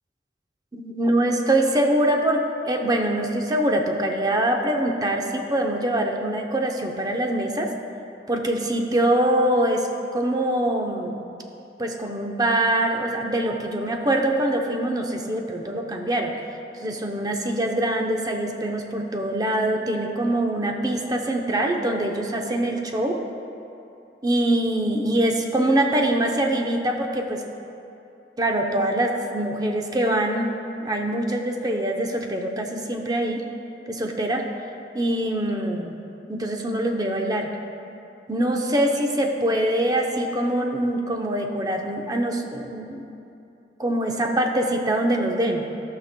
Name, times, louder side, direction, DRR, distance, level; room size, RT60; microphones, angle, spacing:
voice 1, 0.7-7.7 8.3-11.2 11.8-16.3 16.8-23.2 24.2-27.4 28.4-30.5 30.8-33.4 33.9-34.5 34.9-36.0 36.3-37.5 38.3-43.1 43.8-45.6, right 1 dB, 20° right, 2 dB, 0.7 m, -24 dB
17.0 x 5.9 x 2.2 m, 2.7 s
head